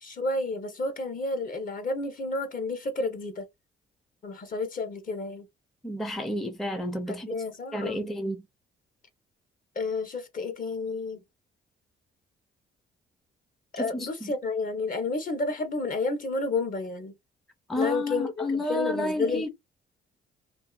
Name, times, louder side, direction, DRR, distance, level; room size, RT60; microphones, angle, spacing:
voice 1, 0.0-3.4 4.2-5.5 7.1-8.1 9.7-11.2 13.7-17.1 17.7-19.5, left 3 dB, 45° left, 0.9 m, -31 dB
voice 2, 5.8-7.3 7.7-8.4 13.8-14.1 17.7-19.5, left 1 dB, ahead, 0.5 m, -30 dB
2.6 x 2.4 x 2.4 m
cardioid pair, 90°, 20 cm